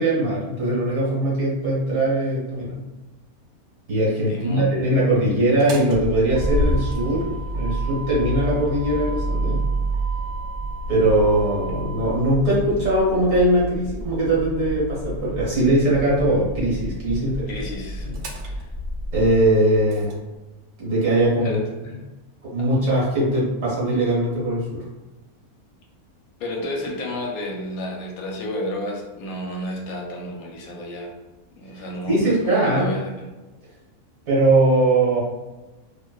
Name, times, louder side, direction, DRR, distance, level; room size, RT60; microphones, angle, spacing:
voice 1, 0.0-2.8 3.9-9.7 10.9-17.5 18.0-18.2 19.1-20.1 20.8-21.6 22.4-24.8 31.7-32.9 34.3-35.2, right 1 dB, 60° right, -6 dB, 1.4 m, -21 dB
voice 2, 4.2-4.8 17.5-18.1 18.5-18.7 21.4-21.6 22.6-22.7 26.4-31.1 31.6-33.1, left 1 dB, 75° left, -1 dB, 1.0 m, -31 dB
Motor vehicle (road), 5.6-20.1, right 1 dB, 75° right, 1.0 m, -29 dB
2.9 x 2.1 x 2.3 m, 1.1 s
omnidirectional pair, 1.6 m